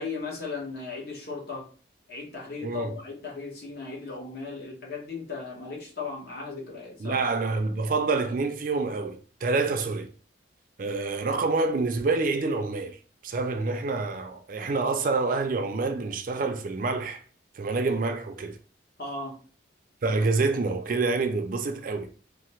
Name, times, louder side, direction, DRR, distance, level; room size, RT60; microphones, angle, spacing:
voice 1, 0.0-1.7 2.1-7.2 19.0-19.4, left 4 dB, 55° left, 0.9 m, -36 dB
voice 2, 2.6-3.0 7.0-10.1 10.8-13.0 13.2-17.2 17.6-18.6 20.0-22.1, right 3 dB, 45° right, 0.4 m, -27 dB
3.2 x 2.0 x 3.0 m
head